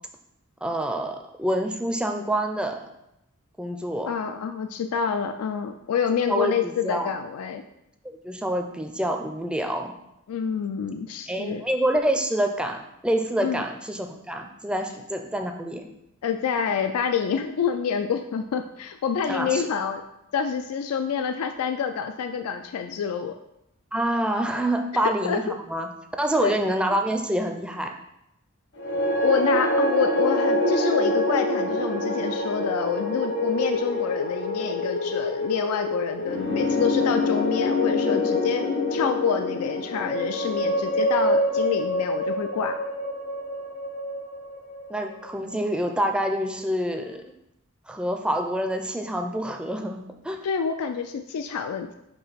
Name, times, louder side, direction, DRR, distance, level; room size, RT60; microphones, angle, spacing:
voice 1, 0.6-2.8 3.6-4.1 6.3-7.1 8.0-9.9 11.3-15.9 19.3-19.7 23.9-25.9 26.2-27.9 44.9-47.2 47.9-50.4, right 1 dB, 5° right, 4 dB, 0.4 m, -27 dB
voice 2, 4.1-7.6 10.3-11.6 13.4-13.6 16.2-20.0 20.3-23.3 25.2-25.4 26.4-26.6 29.2-38.6 38.9-42.7 50.4-51.9, left 7 dB, 85° left, 7 dB, 0.4 m, -27 dB
sound 1, 28.8-45.1, left 1 dB, 55° left, 0.9 m, -25 dB
6.0 x 3.1 x 5.6 m, 0.84 s
head